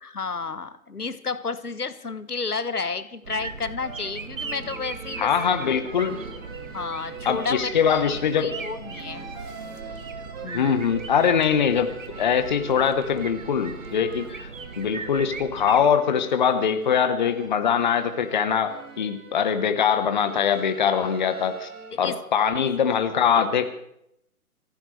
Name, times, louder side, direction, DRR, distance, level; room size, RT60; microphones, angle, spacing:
voice 1, 0.0-5.3 6.7-9.2 10.4-10.8 14.3-14.5 21.9-22.2 22.6-22.7, left 4 dB, 80° left, 13 dB, 1.1 m, -32 dB
sound 1, 3.2-15.9, right 4 dB, 60° right, 1.3 m, -39 dB
sound 2, 3.8-21.9, right 4 dB, 10° right, 1.4 m, -43 dB
voice 2, 5.2-6.2 7.2-8.5 10.5-11.9 12.2-14.5 14.8-21.7 22.0-23.7, left 7 dB, 30° left, 9 dB, 1.0 m, -22 dB
24.5 x 15.0 x 3.2 m, 0.75 s
figure-of-eight pair, 135°, 45 cm